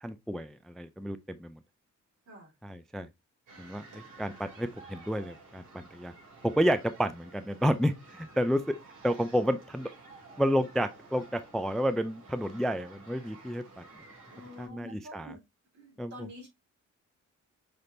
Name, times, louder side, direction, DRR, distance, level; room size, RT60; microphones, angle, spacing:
voice 1, 0.0-1.6 2.6-3.1 3.6-6.1 6.4-8.7 9.0-9.9 10.4-13.8 14.6-15.3 16.0-16.1, equal, ahead, 0.3 m, -30 dB
sound 1, 3.5-14.7, right 3 dB, 85° right, 3.0 m, -53 dB
voice 2, 14.3-15.4 15.7-16.5, left 1 dB, 70° right, 3.5 m, -47 dB
5.9 x 3.4 x 2.5 m
cardioid pair, 120°, 31 cm